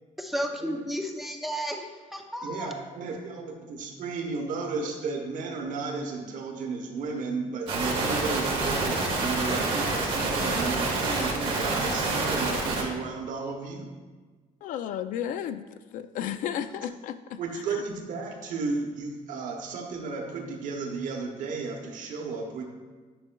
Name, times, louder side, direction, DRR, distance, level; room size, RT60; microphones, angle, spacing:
voice 1, 0.2-2.7, equal, ahead, 3 dB, 0.5 m, -33 dB
voice 2, 2.4-13.9 17.4-22.7, right 4 dB, 65° right, 2 dB, 1.0 m, -33 dB
sound 1, 7.7-12.8, right 3 dB, 40° right, 1.4 m, -27 dB
voice 3, 14.6-15.7 15.9-17.4, left 9 dB, 70° left, 12 dB, 0.4 m, -33 dB
10.0 x 5.4 x 2.2 m, 1.3 s
cardioid pair, 160°, 14 cm